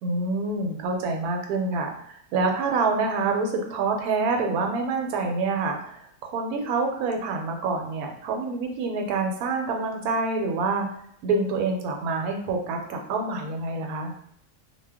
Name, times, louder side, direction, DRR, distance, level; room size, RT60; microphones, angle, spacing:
voice 1, 0.0-10.9 11.2-14.1, right 3 dB, 75° right, 3 dB, 1.0 m, -27 dB
2.4 x 2.2 x 3.4 m, 0.68 s
omnidirectional pair, 1.6 m